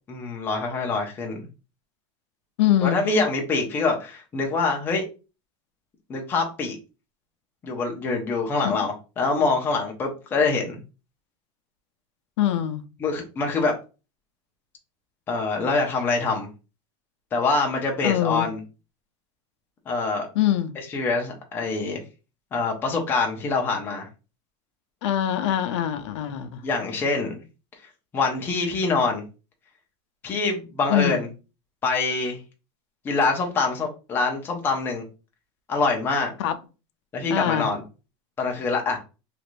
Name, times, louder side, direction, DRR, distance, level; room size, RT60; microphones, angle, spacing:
voice 1, 0.1-1.5 2.8-5.0 6.1-6.8 7.6-10.8 13.0-13.7 15.3-16.5 17.3-18.6 19.9-20.3 20.9-22.0 22.5-24.1 26.6-27.4 28.1-29.2 30.2-31.3 31.8-32.4 33.0-35.0 35.7-36.3 37.1-37.8 38.4-39.0, left 3 dB, 15° left, 0.5 m, -25 dB
voice 2, 2.6-3.0 8.6-8.9 12.4-12.8 18.0-18.5 20.3-20.7 25.0-26.6 30.9-31.2 36.4-36.6 37.3-37.7, left 11 dB, 75° left, 0.5 m, -23 dB
3.1 x 2.5 x 3.0 m
supercardioid pair, 180°, 15 cm